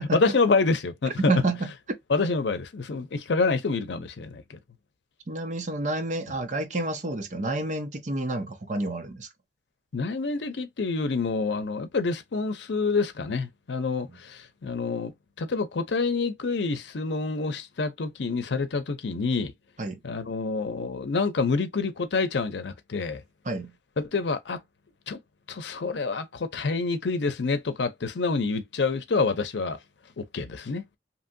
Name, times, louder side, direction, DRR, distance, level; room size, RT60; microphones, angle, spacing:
voice 1, 0.1-1.3 2.1-4.6 9.9-19.5 20.0-23.2 24.0-24.6 25.1-25.2 25.5-29.8 30.2-30.8, left 4 dB, 85° left, 0.6 m, -27 dB
voice 2, 1.3-1.7 5.3-9.3 19.8-20.0 23.4-23.7, right 2 dB, 45° right, 0.6 m, -29 dB
2.9 x 2.7 x 2.6 m
head